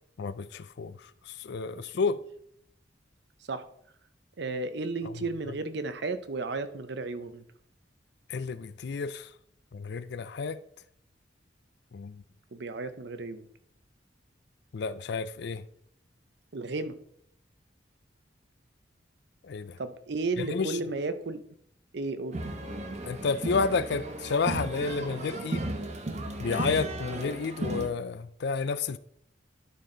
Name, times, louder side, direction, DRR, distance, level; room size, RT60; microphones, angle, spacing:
voice 1, 0.2-1.0 1.3-2.2 8.3-9.3 9.7-10.6 11.9-12.2 14.7-15.6 19.4-19.8 20.4-20.8 23.1-25.7 26.4-29.0, left 4 dB, 60° left, 0.4 m, -31 dB
voice 2, 4.4-7.4 12.5-13.4 16.5-17.0 19.8-21.4 21.9-22.4, right 3 dB, 60° right, 0.7 m, -33 dB
sound 1, 22.3-27.9, right 1 dB, 35° right, 0.9 m, -35 dB
11.5 x 4.3 x 3.8 m
head